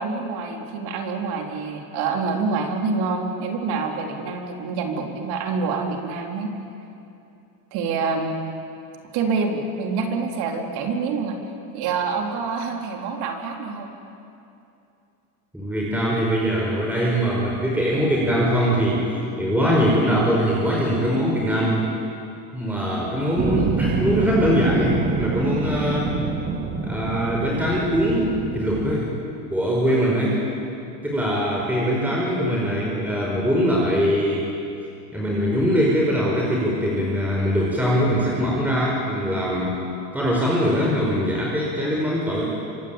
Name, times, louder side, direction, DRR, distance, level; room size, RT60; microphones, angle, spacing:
voice 1, 0.0-6.5 7.7-8.4 9.1-11.4 11.7-13.9, right 4 dB, 50° right, 3 dB, 4.0 m, -26 dB
voice 2, 15.5-19.0 19.4-21.9 22.5-26.1 26.8-29.1 29.5-30.4 31.0-34.4 35.1-39.7 40.1-42.4, equal, 5° right, -4 dB, 5.1 m, -22 dB
sound 1, 23.4-29.0, right 4 dB, 20° right, 2.4 m, -26 dB
26.0 x 23.5 x 9.0 m, 2.6 s
supercardioid pair, 115°, 47 cm